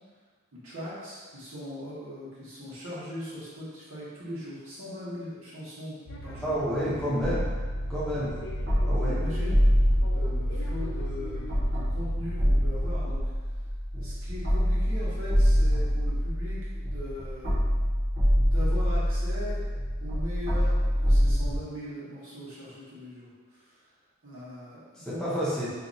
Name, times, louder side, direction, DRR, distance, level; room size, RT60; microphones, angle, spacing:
voice 1, 0.5-6.0 6.2-6.5 9.0-13.2 13.9-18.0 18.5-19.7 20.0-23.8 24.2-25.3, left 1 dB, 75° right, -9 dB, 1.2 m, -40 dB
sound 1, 6.1-12.4, equal, 60° left, 0.5 m, -41 dB
voice 2, 6.4-7.5 7.9-8.3 8.8-9.2 25.0-25.7, equal, 5° left, -10 dB, 0.6 m, -29 dB
sound 2, 7.2-21.6, equal, 50° right, 0.9 m, -25 dB
2.7 x 2.3 x 3.9 m, 1.4 s
head